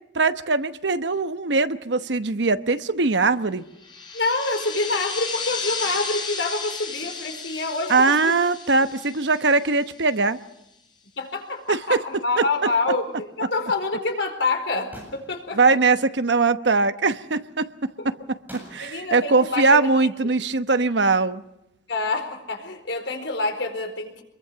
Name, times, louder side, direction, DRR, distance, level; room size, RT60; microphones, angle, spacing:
voice 1, 0.1-3.6 7.9-10.4 11.7-12.0 12.4-12.5 15.5-17.7 18.0-21.4, right 3 dB, 70° right, 1.0 m, -21 dB
sound 1, 3.8-10.1, left 5 dB, 25° left, 6.5 m, -33 dB
voice 2, 4.1-8.4 11.2-15.8 18.0-18.1 18.8-19.8 21.9-24.2, left 3 dB, 90° left, 4.4 m, -27 dB
sound 2, 14.9-16.2 18.5-20.6, equal, 10° right, 7.6 m, -47 dB
25.0 x 22.0 x 6.9 m
head